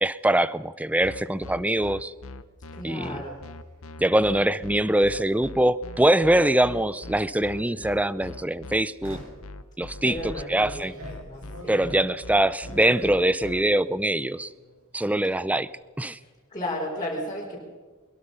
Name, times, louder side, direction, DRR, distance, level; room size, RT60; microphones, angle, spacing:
voice 1, 0.0-2.1 2.8-3.2 4.0-9.2 9.8-10.9 11.7-14.5 14.9-15.7 16.0-16.2, right 1 dB, 5° right, 17 dB, 0.5 m, -23 dB
sound 1, 1.0-13.6, left 2 dB, 65° left, 1.0 m, -41 dB
voice 2, 2.7-3.4 10.0-11.9 16.2-17.6, left 1 dB, 20° left, -6 dB, 4.8 m, -34 dB
sound 2, 3.1-3.3 5.0-5.3 6.0-6.9 7.6-7.9 9.0-9.5 10.1-13.9 14.2-14.8 15.0-15.6, right 1 dB, 65° right, 7.4 m, -45 dB
22.5 x 22.0 x 5.7 m, 1.4 s
head